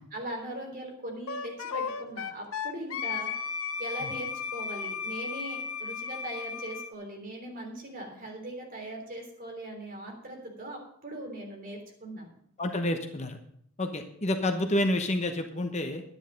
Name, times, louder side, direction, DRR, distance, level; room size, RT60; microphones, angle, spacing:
voice 1, 0.0-3.3 3.8-12.3, right 1 dB, 40° right, 1 dB, 3.4 m, -40 dB
Wind instrument woodwind instrument, 1.3-6.9, left 6 dB, 85° left, 0.8 m, -35 dB
voice 2, 12.6-13.4 13.8-16.0, left 1 dB, 30° left, 5 dB, 1.0 m, -29 dB
11.0 x 9.9 x 5.2 m, 0.67 s
head